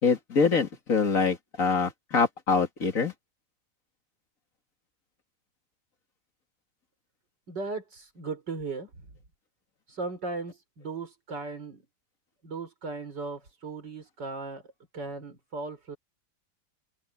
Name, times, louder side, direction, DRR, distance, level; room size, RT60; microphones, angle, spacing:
voice 1, 0.0-3.1, left 5 dB, 50° left, 2.5 m, -25 dB
voice 2, 7.5-8.9 9.9-11.8 12.4-14.6 14.9-16.0, right 3 dB, 85° right, 5.2 m, -37 dB
omnidirectional pair, 1.9 m